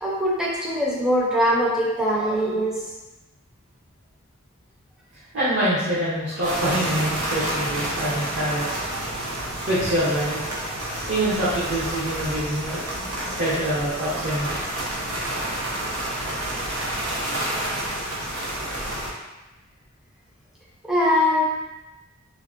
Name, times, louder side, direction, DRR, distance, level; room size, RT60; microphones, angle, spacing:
voice 1, 0.0-2.8 20.8-21.4, equal, 5° right, -5 dB, 0.4 m, -22 dB
voice 2, 5.3-8.7 9.6-10.5 11.1-14.6, right 1 dB, 55° right, -10 dB, 0.7 m, -25 dB
sound 1, 6.4-19.1, right 1 dB, 90° right, 0.7 m, -29 dB
3.4 x 2.1 x 2.5 m, 1.1 s
head